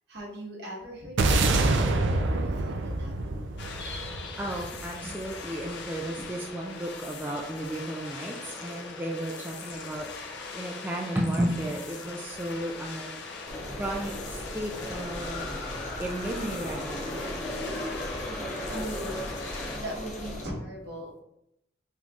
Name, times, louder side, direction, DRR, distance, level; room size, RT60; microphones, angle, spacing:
voice 1, 0.1-3.4 18.1-21.2, right 1 dB, 60° right, -3 dB, 1.4 m, -40 dB
sound 1, 1.2-5.6, right 2 dB, 75° right, 0.5 m, -26 dB
sound 2, 3.6-19.8, left 4 dB, 75° left, 0.6 m, -41 dB
voice 2, 4.4-13.1 13.8-15.5 16.0-17.4, right 1 dB, 10° right, -1 dB, 0.3 m, -34 dB
sound 3, 13.5-20.4, left 1 dB, 40° left, 0.8 m, -36 dB
4.4 x 4.0 x 2.4 m, 0.81 s
head